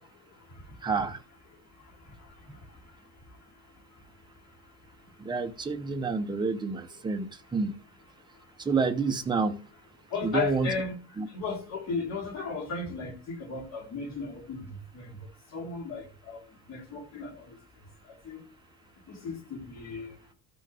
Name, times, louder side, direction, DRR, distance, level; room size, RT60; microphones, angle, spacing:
voice 1, 0.8-1.2 5.2-7.7 8.6-9.6 10.2-10.7 11.2-11.3, right 4 dB, 10° right, 0.8 m, -28 dB
voice 2, 2.2-2.6 10.1-15.3 15.5-16.4 16.7-17.6 18.1-18.5 19.1-20.1, left 4 dB, 45° left, 3.5 m, -36 dB
13.5 x 6.2 x 3.4 m
cardioid pair, 180°, 37 cm